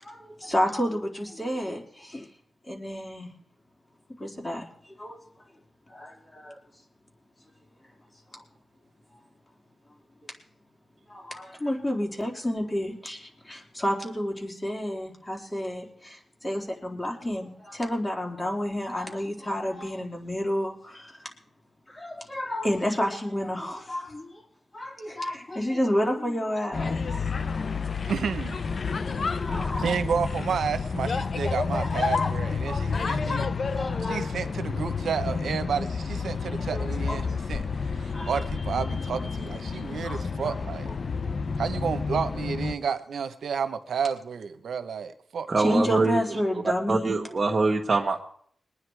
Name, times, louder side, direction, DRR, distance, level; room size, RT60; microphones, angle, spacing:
voice 1, 0.0-2.3 2.7-3.3 4.2-5.2 5.9-6.6 8.3-8.4 9.1-9.2 11.1-21.2 21.9-24.4 24.7-27.5 29.3-30.0 31.7-31.9 32.2-32.3 32.7-33.2 33.7-34.3 36.7-37.4 38.0-38.3 40.0-40.5 40.9-41.0 45.6-47.1, equal, 25° left, 4.0 m, -31 dB
sound 1, 26.7-42.7, left 4 dB, 60° left, 0.7 m, -30 dB
voice 2, 28.0-28.6 29.2-29.3 29.8-33.5 34.0-40.9 41.6-46.2, right 6 dB, 80° right, 1.0 m, -31 dB
voice 3, 45.5-46.4 46.9-48.2, right 3 dB, 45° right, 1.4 m, -24 dB
22.0 x 9.6 x 4.8 m
cardioid pair, 65°, 0 cm